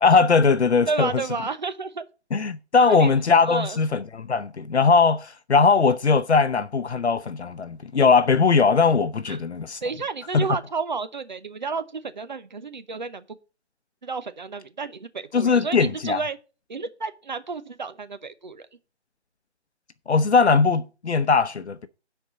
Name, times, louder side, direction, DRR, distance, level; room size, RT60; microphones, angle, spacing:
voice 1, 0.0-1.1 2.3-9.8 10.3-10.4 15.3-16.2 20.1-21.9, left 4 dB, 70° left, 0.8 m, -20 dB
voice 2, 0.9-2.1 2.9-3.1 3.4-3.8 9.3-9.4 9.8-13.4 14.0-16.4 16.7-18.7, right 4 dB, 40° right, 0.9 m, -31 dB
10.5 x 4.5 x 6.5 m
figure-of-eight pair, 170°, 35 cm